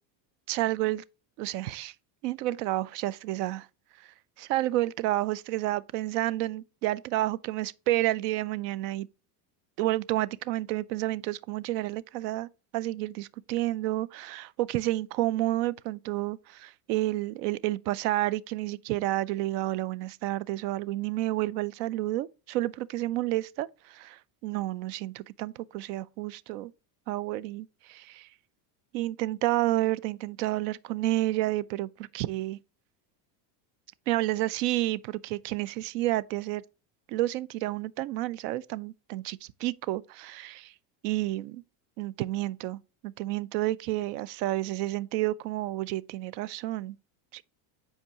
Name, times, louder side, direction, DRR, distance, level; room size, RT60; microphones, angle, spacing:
voice 1, 0.5-1.0 1.4-1.9 2.2-3.7 4.0-4.1 4.4-9.1 9.8-26.7 27.1-28.3 28.9-32.6 34.1-36.6 37.1-40.7 41.0-41.6 42.0-47.0 47.3-47.4, right 16 dB, 80° right, 0.6 m, -30 dB
7.9 x 4.7 x 2.8 m
cardioid pair, 160°, 48 cm